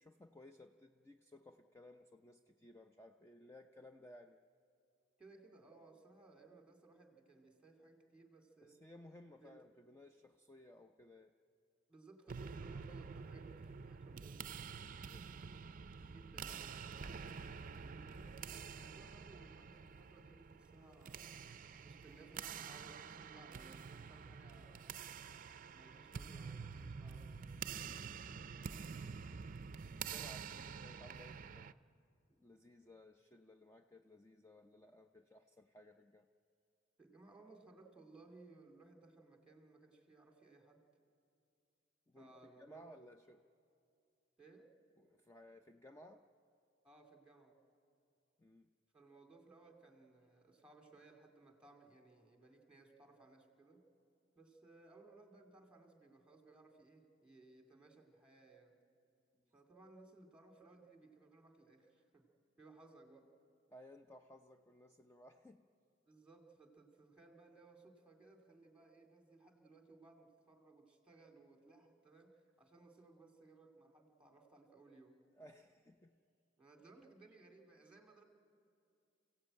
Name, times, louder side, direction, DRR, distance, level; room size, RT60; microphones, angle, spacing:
voice 1, 0.0-4.4 8.6-11.3 14.9-15.3 29.8-31.8 32.4-36.3 42.1-43.4 45.0-46.3 48.4-48.7 63.7-65.6 75.3-76.2, left 1 dB, 15° left, 6 dB, 0.6 m, -59 dB
voice 2, 5.2-8.8 9.4-9.5 11.9-14.4 16.1-17.3 17.8-21.4 21.8-25.0 25.7-27.5 37.0-40.8 42.1-42.9 44.4-44.7 46.8-47.6 48.9-53.8 54.4-58.8 59.5-62.3 62.6-63.3 66.1-75.2 76.6-78.2, right 3 dB, 5° right, 3 dB, 2.5 m, -62 dB
sound 1, 12.3-31.7, right 6 dB, 45° right, 0.5 m, -48 dB
28.5 x 16.0 x 8.9 m, 2.5 s
head